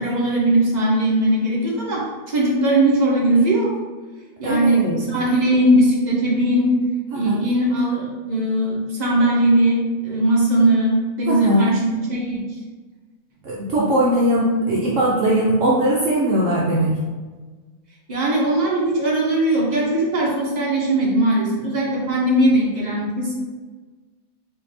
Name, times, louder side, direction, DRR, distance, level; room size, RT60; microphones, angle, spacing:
voice 1, 0.0-3.7 4.4-6.8 7.1-12.4 18.1-23.3, right 1 dB, 30° right, -5 dB, 1.1 m, -19 dB
voice 2, 4.4-5.0 7.1-7.4 11.3-11.7 13.4-16.9, right 1 dB, 65° right, -5 dB, 1.0 m, -20 dB
4.4 x 2.7 x 4.2 m, 1.4 s
omnidirectional pair, 1.5 m